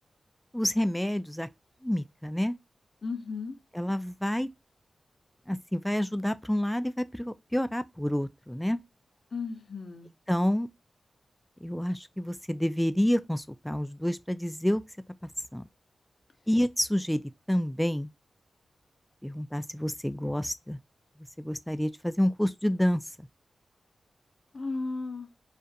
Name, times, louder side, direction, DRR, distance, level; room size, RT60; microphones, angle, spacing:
voice 1, 0.5-1.5 1.8-2.6 3.8-4.5 5.5-8.8 10.3-10.7 11.6-14.8 15.5-15.6 16.5-17.2 17.5-18.1 19.2-20.8 21.4-23.3, equal, 5° left, 0.3 m, -28 dB
voice 2, 3.0-3.6 9.3-10.1 24.5-25.3, left 4 dB, 60° left, 0.6 m, -35 dB
2.4 x 2.1 x 2.7 m
cardioid pair, 45°, 0 cm